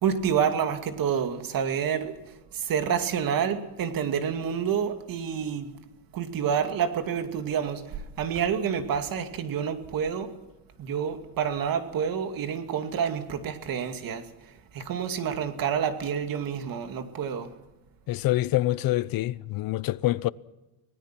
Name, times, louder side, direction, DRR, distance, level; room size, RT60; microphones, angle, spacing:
voice 1, 0.0-2.1 2.5-5.7 6.1-10.3 10.8-17.5, right 7 dB, 45° right, 2.6 m, -28 dB
voice 2, 18.1-20.3, left 16 dB, 50° left, 0.8 m, -26 dB
25.5 x 19.0 x 6.0 m
supercardioid pair, 105°, 46 cm